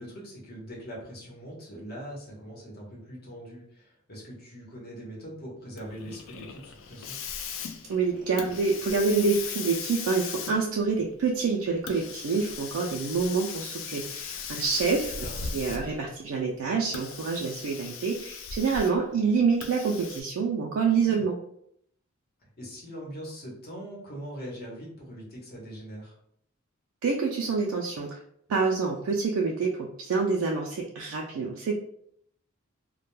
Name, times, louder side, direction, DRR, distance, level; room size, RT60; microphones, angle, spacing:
voice 1, 0.0-7.2 15.2-15.5 21.0-21.2 22.6-26.2, equal, 50° left, -3 dB, 0.9 m, -42 dB
Hiss, 5.8-16.1 16.8-19.1 19.6-20.2, left 6 dB, 65° left, 0.3 m, -38 dB
voice 2, 7.9-21.4 27.0-28.2 28.5-31.8, right 4 dB, 85° right, -1 dB, 0.4 m, -27 dB
2.1 x 2.1 x 3.0 m, 0.69 s
head